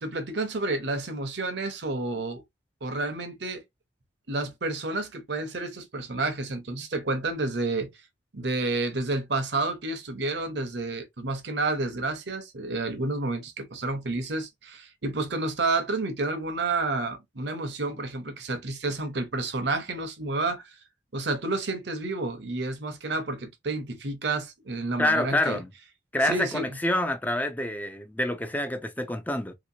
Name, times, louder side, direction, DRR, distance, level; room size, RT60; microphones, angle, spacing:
voice 1, 0.0-2.4 2.8-3.6 4.3-7.9 8.3-20.7 21.1-25.6 26.2-26.6, right 2 dB, 60° right, 0.9 m, -30 dB
voice 2, 25.0-25.7 26.1-29.5, left 1 dB, 10° left, 0.4 m, -27 dB
3.1 x 2.9 x 2.7 m
head